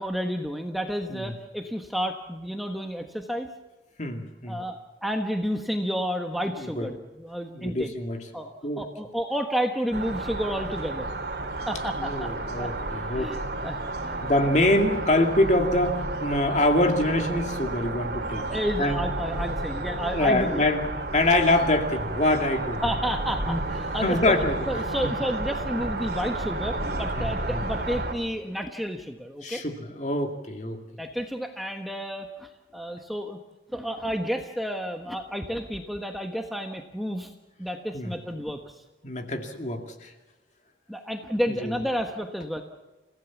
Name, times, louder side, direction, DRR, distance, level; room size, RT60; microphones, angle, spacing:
voice 1, 0.0-3.5 4.5-7.9 8.3-11.1 11.7-12.3 12.6-12.7 13.1-13.4 13.6-14.5 18.5-20.6 22.8-24.3 24.7-29.6 31.0-33.4 33.7-37.3 37.6-38.7 40.9-42.6, equal, ahead, 3 dB, 1.2 m, -31 dB
voice 2, 4.0-4.6 6.5-6.9 7.5-8.2 8.6-8.8 12.0-13.4 14.2-18.5 18.8-19.0 19.4-19.5 20.1-20.9 21.1-22.8 23.4-23.6 24.0-25.1 26.8-27.6 29.4-30.8 37.9-38.1 39.0-40.1 41.6-41.7, left 1 dB, 40° left, 4 dB, 2.3 m, -25 dB
sound 1, 9.9-28.1, right 2 dB, 60° right, 2.7 m, -31 dB
29.5 x 16.0 x 7.2 m, 1.1 s
head